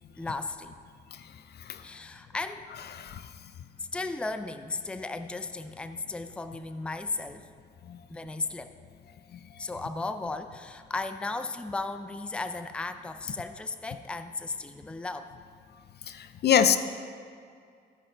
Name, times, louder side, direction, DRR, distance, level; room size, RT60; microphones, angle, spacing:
voice 1, 0.2-0.7 1.8-2.7 3.8-7.5 8.1-8.7 9.6-15.3, left 3 dB, 5° left, 9 dB, 0.4 m, -35 dB
voice 2, 16.1-16.8, left 8 dB, 55° left, 11 dB, 0.5 m, -24 dB
15.0 x 5.0 x 4.4 m, 2.2 s
cardioid pair, 90°, 20 cm